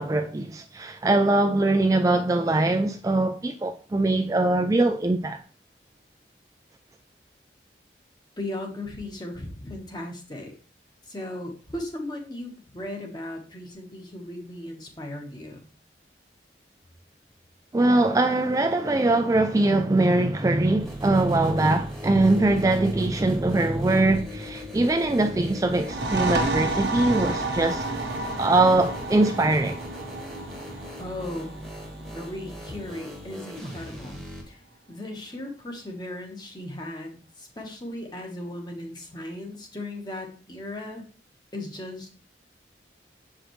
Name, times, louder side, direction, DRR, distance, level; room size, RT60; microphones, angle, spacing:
voice 1, 0.0-5.4 17.7-27.9 28.4-29.8, right 2 dB, 20° right, 0.3 m, -22 dB
voice 2, 8.4-10.5 11.1-15.7 30.6-31.5 32.1-34.6 34.9-41.0 41.5-42.1, left 1 dB, 25° left, 1.3 m, -37 dB
sound 1, 20.8-34.4, equal, ahead, 1.3 m, -40 dB
sound 2, 25.8-33.2, right 2 dB, 90° right, 1.4 m, -30 dB
7.4 x 5.0 x 3.1 m
head